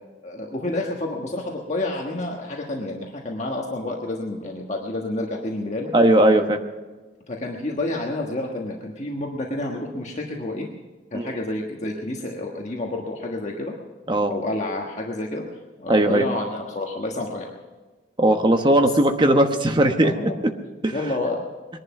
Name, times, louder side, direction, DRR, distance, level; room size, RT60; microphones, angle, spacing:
voice 1, 0.2-5.9 7.3-10.7 11.1-13.7 14.3-17.5 18.8-18.9 20.0-20.4 20.9-21.4, left 2 dB, 40° left, -1 dB, 1.4 m, -29 dB
voice 2, 5.9-6.6 11.1-11.4 14.1-14.3 15.9-16.3 18.2-20.1 20.8-20.9, right 1 dB, 25° right, 5 dB, 1.1 m, -18 dB
21.0 x 11.0 x 6.0 m, 1.3 s
head